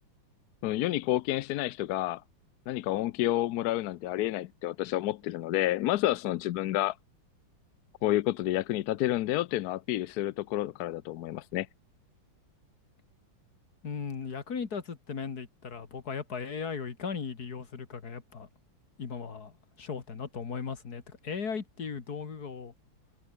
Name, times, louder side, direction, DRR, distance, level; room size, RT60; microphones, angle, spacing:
voice 1, 0.6-2.2 2.7-7.0 8.0-11.7, left 14 dB, 70° left, 0.9 m, -29 dB
voice 2, 13.8-18.5 19.0-22.7, left 5 dB, 50° left, 2.6 m, -37 dB
omnidirectional pair, 2.1 m